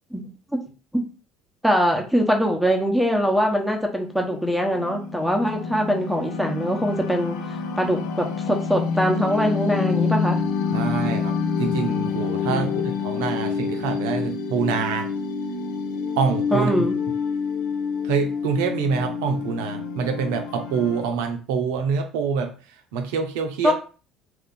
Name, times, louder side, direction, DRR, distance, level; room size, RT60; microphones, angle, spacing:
voice 1, 1.6-7.4 7.8-10.4 12.5-13.0 16.5-17.0 23.6-23.7, equal, ahead, 1 dB, 0.9 m, -22 dB
sound 1, 4.1-21.1, left 5 dB, 75° left, 0.5 m, -27 dB
voice 2, 10.7-12.7 13.0-15.1 16.2-16.9 18.0-22.5 22.9-23.7, right 6 dB, 80° right, 5 dB, 0.5 m, -25 dB
2.4 x 2.4 x 3.7 m, 0.36 s
hypercardioid pair, 75°, 0 cm